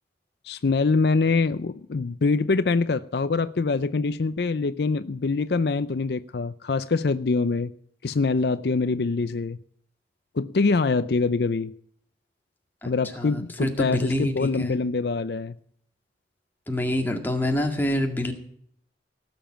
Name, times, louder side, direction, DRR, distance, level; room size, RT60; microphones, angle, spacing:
voice 1, 0.4-7.7 8.0-9.6 10.3-11.7 12.8-15.5, left 4 dB, 60° left, 0.5 m, -24 dB
voice 2, 12.8-14.7 16.7-18.3, left 1 dB, 10° left, 1.9 m, -27 dB
18.0 x 7.1 x 8.9 m
head